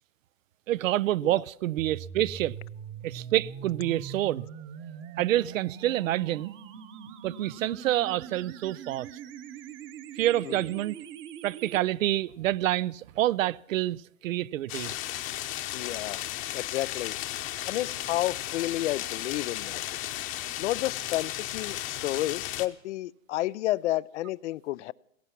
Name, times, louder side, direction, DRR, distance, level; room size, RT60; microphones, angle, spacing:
voice 1, 0.7-2.6 3.0-4.5 5.2-6.5 7.2-9.1 10.2-11.0 11.4-14.9, right 14 dB, 75° right, 0.5 m, -27 dB
sound 1, 1.8-11.8, right 8 dB, 30° right, 1.0 m, -42 dB
sound 2, 14.7-22.7, left 14 dB, 30° left, 0.9 m, -35 dB
voice 2, 15.7-16.2 16.5-17.2 17.7-20.0 20.6-24.9, left 16 dB, 60° left, 0.5 m, -31 dB
16.5 x 15.0 x 5.9 m
hypercardioid pair, 120°, 40 cm